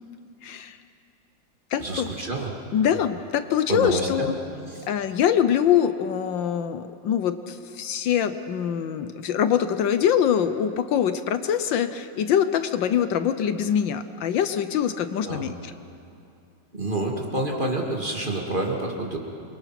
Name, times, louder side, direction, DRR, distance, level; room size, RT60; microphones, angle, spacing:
voice 1, 0.4-0.8 1.7-2.1 2.7-4.3 4.9-15.6, left 9 dB, 75° left, 10 dB, 1.5 m, -24 dB
voice 2, 1.8-2.5 3.0-3.1 3.7-4.3 4.7-4.8 15.2-15.4 16.7-19.2, right 2 dB, 25° right, 0 dB, 2.5 m, -28 dB
27.5 x 23.0 x 5.9 m, 2.6 s
omnidirectional pair, 2.1 m